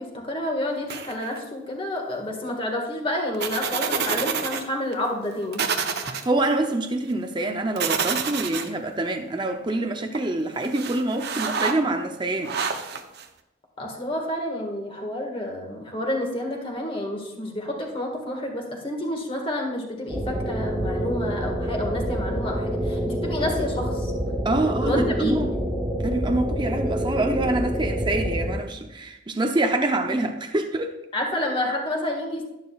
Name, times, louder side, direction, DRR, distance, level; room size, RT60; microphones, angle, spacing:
voice 1, 0.0-5.6 13.8-24.1 24.8-25.5 31.1-32.4, left 1 dB, 25° left, 1.7 m, -29 dB
sound 1, 0.9-1.4 3.3-4.6 4.9-5.0 5.5-6.2 7.8-8.7 10.1-10.2 10.6-11.7 12.4-13.2, right 6 dB, 55° right, 0.8 m, -27 dB
voice 2, 6.1-12.6 24.4-25.4 26.0-30.9, right 2 dB, 25° right, 0.6 m, -26 dB
sound 2, 20.1-28.5, equal, 5° right, 1.8 m, -27 dB
11.5 x 11.0 x 2.4 m
head